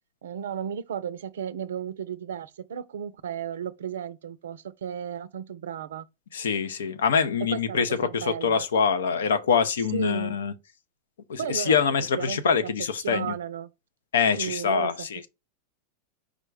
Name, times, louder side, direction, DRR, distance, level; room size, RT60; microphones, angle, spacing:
voice 1, 0.2-6.1 7.5-8.7 9.9-10.4 11.4-11.8 12.2-12.7 13.0-13.7 14.4-14.9, right 8 dB, 80° right, 0.4 m, -34 dB
voice 2, 6.3-10.5 11.3-13.4 14.1-15.3, left 6 dB, 80° left, 0.6 m, -25 dB
5.0 x 2.2 x 4.7 m
hypercardioid pair, 100°, 0 cm